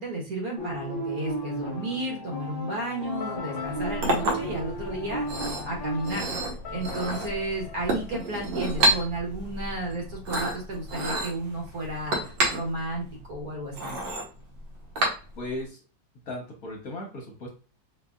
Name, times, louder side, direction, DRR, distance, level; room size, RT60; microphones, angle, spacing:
voice 1, 0.0-6.3 6.7-13.9, right 2 dB, 55° right, -1 dB, 1.3 m, -33 dB
sound 1, 0.6-6.2, right 1 dB, 35° left, 1.1 m, -34 dB
sound 2, 3.2-8.9, left 8 dB, 75° left, 1.3 m, -43 dB
Chink clink, 3.6-15.6, right 1 dB, 70° right, 1.7 m, -30 dB
voice 2, 15.3-15.8 16.2-17.5, left 1 dB, 55° left, 0 dB, 1.3 m, -36 dB
5.0 x 2.7 x 2.3 m, 0.36 s
omnidirectional pair, 2.2 m